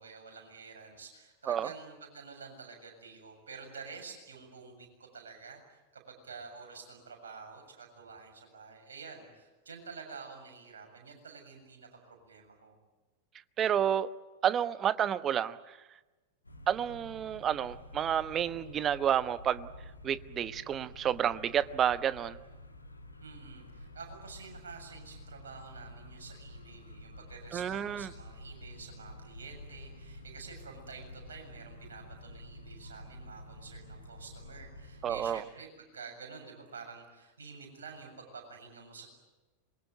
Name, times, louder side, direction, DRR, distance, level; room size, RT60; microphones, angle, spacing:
voice 1, 0.0-12.8 23.2-39.1, right 5 dB, 70° right, 3 dB, 7.3 m, -49 dB
voice 2, 13.6-14.1 14.4-15.8 16.7-19.7 20.0-22.4 27.5-28.1 35.0-35.4, right 9 dB, 25° right, 14 dB, 1.0 m, -30 dB
sound 1, 16.4-35.3, left 1 dB, 80° left, 2.2 m, -50 dB
27.0 x 22.5 x 9.3 m, 1.1 s
figure-of-eight pair, 90°, 0 cm